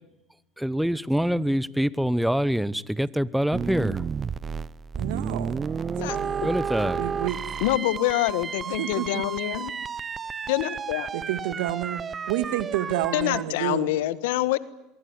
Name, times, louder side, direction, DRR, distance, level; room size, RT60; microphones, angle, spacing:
voice 1, 0.6-4.0 6.4-7.0, equal, ahead, 0.9 m, -25 dB
sound 1, 3.5-13.4, right 6 dB, 30° right, 0.9 m, -32 dB
voice 2, 5.0-5.6 6.1-6.6 7.0-7.4 8.7-9.2 11.1-12.0 12.3-13.9, right 13 dB, 75° right, 2.2 m, -29 dB
voice 3, 7.6-9.7 10.5-11.1 13.1-14.6, left 16 dB, 75° left, 1.5 m, -26 dB
25.0 x 22.5 x 9.5 m
hypercardioid pair, 90°, 0 cm